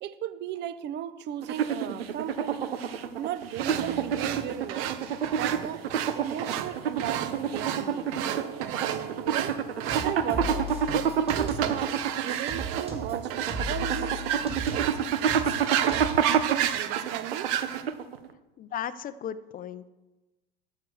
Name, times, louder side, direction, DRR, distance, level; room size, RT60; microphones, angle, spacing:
voice 1, 0.0-2.7 3.2-5.0 5.2-5.8 6.2-8.1 9.3-13.3 13.7-15.0 15.3-17.5, right 11 dB, 35° right, 14 dB, 0.7 m, -36 dB
sound 1, 1.4-18.3, right 7 dB, 85° right, 0.8 m, -29 dB
sound 2, 3.6-17.8, right 10 dB, 55° right, 0.9 m, -32 dB
sound 3, 9.9-11.9 12.3-16.3, equal, 20° right, 2.1 m, -36 dB
voice 2, 18.6-19.9, left 9 dB, 30° left, 14 dB, 0.6 m, -36 dB
9.0 x 6.7 x 7.0 m, 1.1 s
hypercardioid pair, 85°, 29 cm